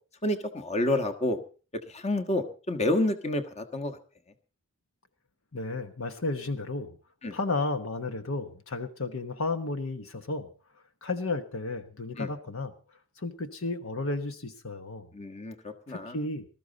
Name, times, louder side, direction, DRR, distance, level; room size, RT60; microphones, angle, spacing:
voice 1, 0.2-1.4 1.9-4.0 7.2-7.3 12.2-12.3 15.1-16.2, left 1 dB, 30° left, 8 dB, 1.4 m, -29 dB
voice 2, 5.5-7.0 7.3-10.5 11.0-12.7 13.2-15.1 15.9-16.5, left 3 dB, 65° left, 9 dB, 1.2 m, -33 dB
19.5 x 13.5 x 4.0 m, 0.36 s
head